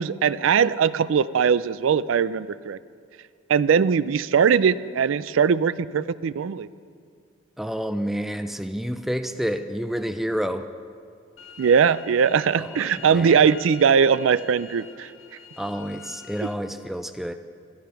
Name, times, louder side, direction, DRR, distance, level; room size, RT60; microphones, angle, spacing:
voice 1, 0.0-2.8 3.5-6.7 11.6-15.1, right 7 dB, 75° right, 16 dB, 0.4 m, -20 dB
voice 2, 7.6-10.7 12.6-12.8 13.1-13.4 15.6-17.3, equal, ahead, 8 dB, 0.4 m, -29 dB
sound 1, 11.4-16.5, left 7 dB, 80° left, 0.9 m, -46 dB
15.0 x 13.5 x 5.8 m, 2.2 s
head